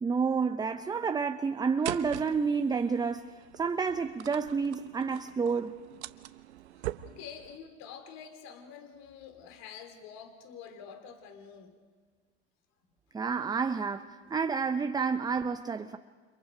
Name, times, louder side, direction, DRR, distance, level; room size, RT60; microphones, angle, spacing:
voice 1, 0.0-3.3 3.6-5.7 13.1-16.0, right 5 dB, 10° right, 0.6 m, -29 dB
sound 1, 1.8-7.6, right 14 dB, 80° right, 1.1 m, -42 dB
voice 2, 7.0-11.7 14.3-14.4, left 7 dB, 50° left, 2.6 m, -47 dB
30.0 x 27.0 x 5.1 m
hypercardioid pair, 105°, 33 cm